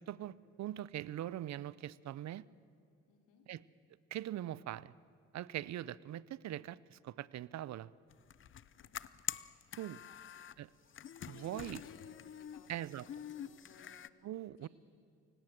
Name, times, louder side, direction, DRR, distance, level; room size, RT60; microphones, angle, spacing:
voice 1, 0.0-2.5 3.5-3.6 4.1-4.9 5.3-7.9 9.8-10.0 10.6-10.7 11.3-11.8 12.7-13.0 14.2-14.7, right 12 dB, 65° right, 21 dB, 0.6 m, -42 dB
voice 2, 3.1-3.5 8.7-8.9 10.0-10.5 11.2-14.2 14.6-14.7, left 5 dB, 90° left, 4 dB, 3.1 m, -63 dB
sound 1, 8.1-10.5 10.9-14.1, left 9 dB, 40° left, 0.6 m, -46 dB
28.5 x 17.0 x 7.5 m, 2.6 s
cardioid pair, 90°, 30 cm